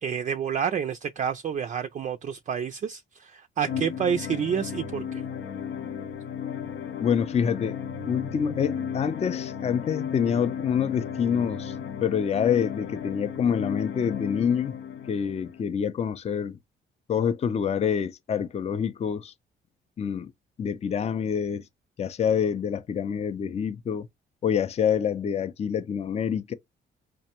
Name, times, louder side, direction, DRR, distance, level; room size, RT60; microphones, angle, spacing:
voice 1, 0.0-5.2, right 7 dB, 40° right, 0.4 m, -29 dB
sound 1, 3.6-15.6, left 7 dB, 85° left, 0.7 m, -34 dB
voice 2, 7.0-7.8 8.1-11.7 12.0-14.8 15.1-16.6 17.1-19.3 20.0-20.3 20.6-21.6 22.0-24.1 24.4-26.5, left 7 dB, 30° left, 0.4 m, -26 dB
5.0 x 2.1 x 2.8 m
cardioid pair, 90°, 20 cm